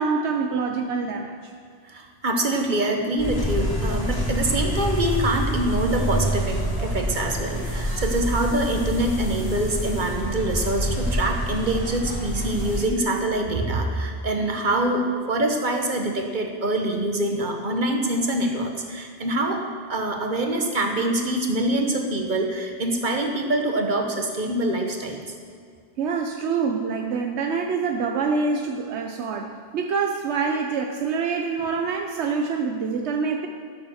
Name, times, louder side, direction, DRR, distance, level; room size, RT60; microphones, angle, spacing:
voice 1, 0.0-1.5 26.0-33.5, right 5 dB, 90° right, 3 dB, 1.1 m, -26 dB
voice 2, 1.9-25.3, right 1 dB, 45° right, 3 dB, 1.4 m, -25 dB
sound 1, 3.2-12.9, equal, 20° left, 2.0 m, -27 dB
13.5 x 7.3 x 6.4 m, 2.2 s
omnidirectional pair, 1.1 m